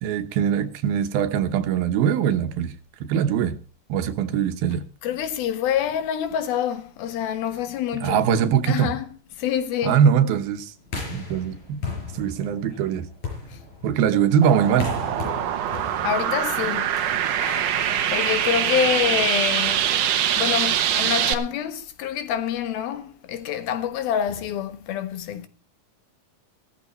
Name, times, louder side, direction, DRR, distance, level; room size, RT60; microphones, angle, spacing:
voice 1, 0.0-2.7 3.0-3.6 3.9-4.8 8.0-8.9 9.8-10.7 11.1-11.8 12.1-13.1 13.8-14.9, right 8 dB, 85° right, 3.0 m, -22 dB
voice 2, 5.0-8.3 8.7-9.0 9.4-10.0 13.5-13.6 16.0-17.0 18.1-19.9 20.4-25.5, left 9 dB, 90° left, 3.3 m, -26 dB
sound 1, 10.8-19.0, left 3 dB, 50° left, 6.6 m, -36 dB
sound 2, 14.4-21.3, right 10 dB, 70° right, 2.5 m, -23 dB
15.5 x 14.0 x 4.2 m
omnidirectional pair, 4.2 m